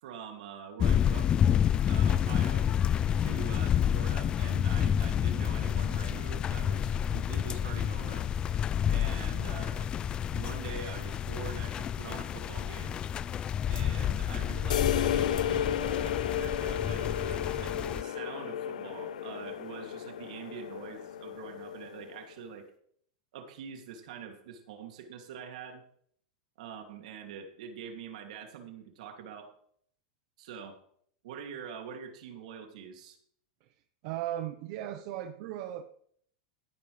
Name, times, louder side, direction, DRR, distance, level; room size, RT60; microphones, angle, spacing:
voice 1, 0.0-1.3 1.9-2.7 3.2-8.3 8.9-9.9 10.3-13.0 13.7-22.7 23.3-25.8 26.6-29.5 30.4-30.8 31.2-33.2, right 7 dB, 70° right, 4 dB, 2.8 m, -44 dB
sound 1, 0.8-18.0, left 9 dB, 25° left, 0.4 m, -29 dB
sound 2, 14.7-22.2, left 10 dB, 90° left, 0.9 m, -33 dB
voice 2, 34.0-36.0, right 12 dB, 50° right, 8 dB, 1.0 m, -37 dB
14.5 x 11.0 x 3.4 m, 0.63 s
supercardioid pair, 145°, 4 cm